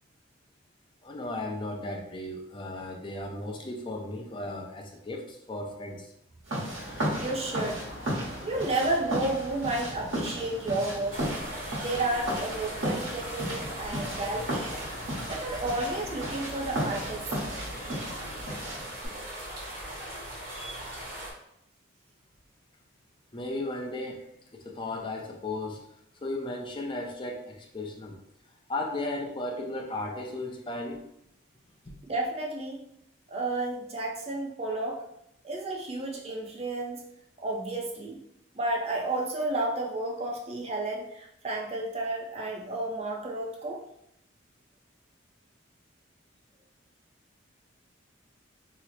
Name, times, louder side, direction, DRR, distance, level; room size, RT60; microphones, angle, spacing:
voice 1, 1.0-6.1 23.3-25.9 26.2-28.2 28.7-31.1 31.8-31.9, left 2 dB, 25° left, 1 dB, 0.5 m, -35 dB
sound 1, 6.5-19.1, right 1 dB, 85° right, 1.3 m, -35 dB
sound 2, 6.6-18.6, left 1 dB, 75° left, 0.7 m, -45 dB
voice 2, 6.9-7.8 8.4-11.2 11.8-14.7 15.3-17.3 32.1-32.8 33.3-35.0 35.4-37.0 37.4-38.2 38.5-43.8, right 2 dB, 30° right, 0 dB, 0.5 m, -32 dB
sound 3, 11.1-21.3, right 1 dB, 50° right, 1.1 m, -39 dB
2.8 x 2.0 x 4.1 m, 0.76 s
head